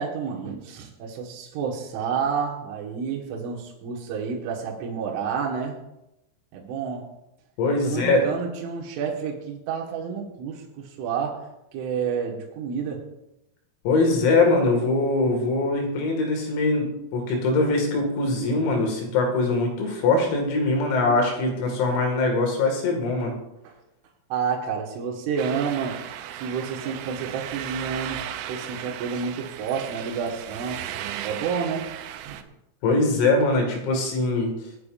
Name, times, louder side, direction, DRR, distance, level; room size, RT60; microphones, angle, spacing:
voice 1, 0.0-5.8 6.5-7.0 7.8-11.4 11.7-13.0 23.6-23.8 24.3-26.0 26.3-28.2 28.5-30.8 31.2-31.9 32.3-32.5, right 6 dB, 70° right, -2 dB, 3.9 m, -29 dB
voice 2, 7.6-8.2 13.8-23.3 32.8-34.5, left 3 dB, 80° left, 2 dB, 4.8 m, -22 dB
sound 1, 25.4-32.4, right 11 dB, 90° right, 2.5 m, -36 dB
25.0 x 8.4 x 2.6 m, 0.90 s
omnidirectional pair, 6.0 m